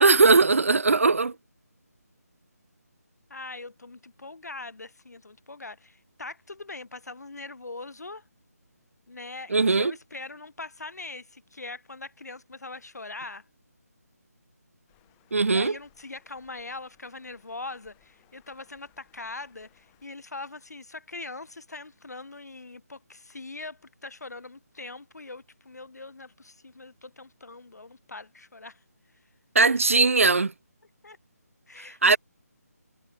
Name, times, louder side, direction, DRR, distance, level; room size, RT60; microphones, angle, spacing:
voice 1, 0.0-1.3 9.5-9.9 15.3-15.8 29.5-30.5 32.0-32.2, right 4 dB, 55° right, 0.5 m, -19 dB
voice 2, 3.3-8.2 9.1-13.4 15.5-28.8 29.8-29.9 31.0-31.2 31.7-32.2, left 3 dB, 75° left, 3.5 m, -42 dB
sound 1, 14.9-20.1, left 39 dB, 10° left, 3.0 m, -65 dB
figure-of-eight pair, 180°, 9 cm